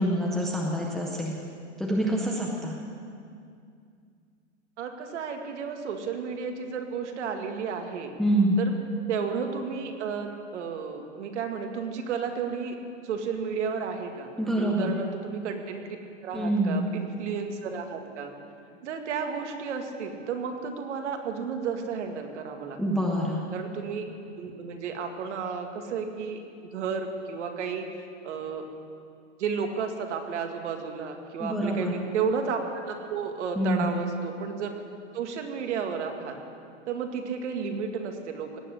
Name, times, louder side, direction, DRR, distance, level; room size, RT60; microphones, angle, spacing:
voice 1, 0.0-1.3 1.8-2.8 8.2-8.6 14.4-14.9 16.3-16.9 22.8-23.5 31.4-31.9 33.6-33.9, right 1 dB, ahead, -2 dB, 0.5 m, -26 dB
voice 2, 4.8-8.1 8.6-8.7 9.1-12.8 13.0-16.0 16.2-18.3 18.8-22.8 23.5-24.0 24.4-26.4 26.7-27.9 28.2-28.7 29.4-34.7 35.1-36.4 36.9-38.6, right 6 dB, 70° right, 4 dB, 2.1 m, -32 dB
17.5 x 7.8 x 10.0 m, 2.3 s
supercardioid pair, 170°, 36 cm